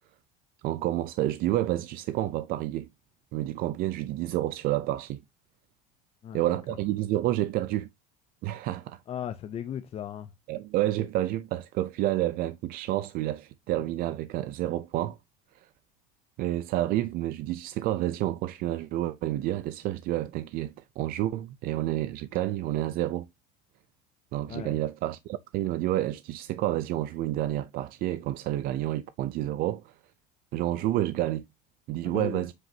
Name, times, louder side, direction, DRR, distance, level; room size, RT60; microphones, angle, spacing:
voice 1, 0.6-2.9 3.3-5.2 6.3-7.9 8.4-9.0 10.5-15.2 15.5-15.7 16.4-23.3 24.3-29.9 30.5-31.4 31.9-32.5, right 14 dB, 50° right, 0.5 m, -29 dB
voice 2, 9.1-10.3 24.5-24.8 32.0-32.5, left 10 dB, 30° left, 0.6 m, -36 dB
7.6 x 6.1 x 2.7 m
cardioid pair, 145°, 19 cm